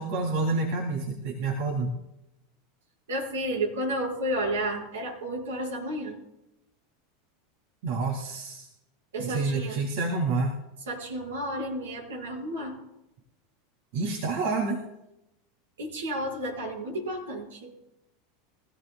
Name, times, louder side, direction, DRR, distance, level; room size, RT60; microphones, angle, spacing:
voice 1, 0.0-2.0 7.8-8.7 9.2-10.6 13.9-14.9, right 3 dB, 65° right, 0 dB, 2.5 m, -28 dB
voice 2, 3.1-6.2 9.1-9.8 10.9-12.8 15.8-17.8, right 1 dB, 90° right, -1 dB, 5.7 m, -32 dB
23.5 x 15.0 x 2.4 m, 0.88 s
hypercardioid pair, 110°, 0 cm